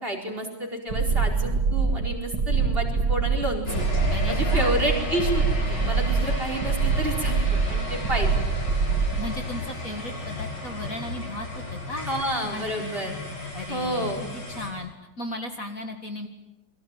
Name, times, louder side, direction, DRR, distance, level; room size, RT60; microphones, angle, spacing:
voice 1, 0.0-3.8 4.3-7.4 7.7-8.3 12.1-13.2 13.7-14.2, right 1 dB, 25° right, 1 dB, 4.8 m, -29 dB
sound 1, 0.9-9.3, right 5 dB, 50° right, 2.4 m, -24 dB
sound 2, 3.6-14.7, left 2 dB, 80° left, 7.5 m, -33 dB
voice 2, 4.1-4.8 9.2-12.1 12.4-12.9 13.5-14.1 14.5-14.9 15.2-16.3, left 1 dB, 45° left, 5 dB, 2.3 m, -35 dB
29.0 x 22.5 x 9.0 m, 1.0 s
omnidirectional pair, 2.2 m